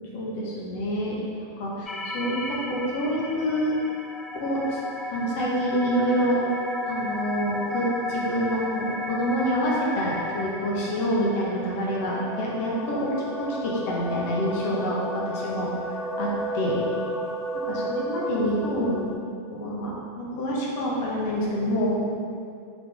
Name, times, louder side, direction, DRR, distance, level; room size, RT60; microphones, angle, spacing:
voice 1, 0.1-1.2 1.6-3.8 4.4-4.8 5.1-6.4 6.9-15.7 16.2-16.8 17.7-19.0 19.5-22.0, equal, 50° left, -4 dB, 1.8 m, -27 dB
sound 1, 1.9-19.2, left 1 dB, 10° left, 0.5 m, -33 dB
7.9 x 5.5 x 3.9 m, 2.4 s
figure-of-eight pair, 90°, 0 cm